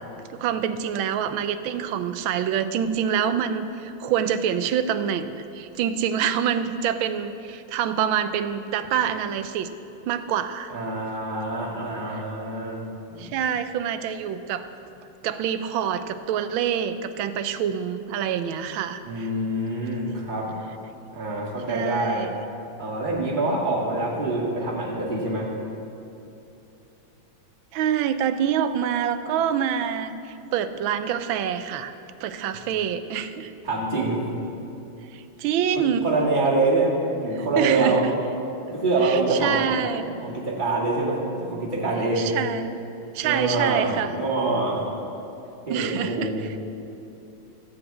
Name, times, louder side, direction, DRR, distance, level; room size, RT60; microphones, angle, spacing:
voice 1, 0.3-9.7 10.1-10.7 12.1-12.2 13.2-14.7 15.2-19.3 21.7-22.3 27.7-31.9 32.2-33.5 35.1-36.1 37.3-38.1 39.0-40.1 42.2-42.8 43.1-44.1 45.7-46.5, right 8 dB, 80° right, 11 dB, 1.4 m, -26 dB
voice 2, 10.7-12.8 13.1-13.3 19.0-20.5 21.1-22.3 22.8-25.5 33.6-34.2 36.0-38.0 38.7-39.7 40.2-42.3 43.2-44.8 45.7-46.4, right 2 dB, 25° right, -4 dB, 1.9 m, -25 dB
13.5 x 4.8 x 8.5 m, 2.9 s
omnidirectional pair, 2.3 m